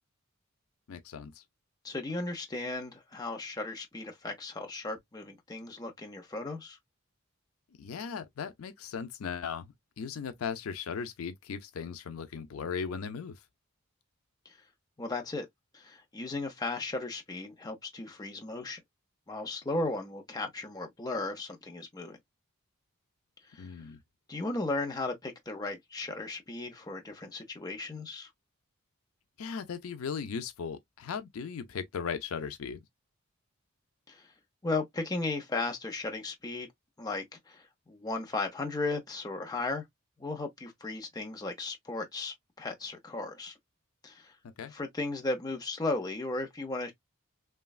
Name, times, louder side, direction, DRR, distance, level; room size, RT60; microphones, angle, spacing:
voice 1, 0.9-1.4 7.8-13.4 23.6-24.0 29.4-32.8 44.4-44.7, left 6 dB, 75° left, 0.4 m, -37 dB
voice 2, 1.8-6.8 14.5-14.6 15.0-15.5 15.7-18.8 19.3-22.2 23.5-23.8 24.3-28.3 34.1-34.3 34.6-36.7 37.0-39.8 40.2-43.5 44.0-44.3 44.7-46.9, left 2 dB, 20° left, 0.6 m, -36 dB
3.1 x 2.2 x 2.3 m
head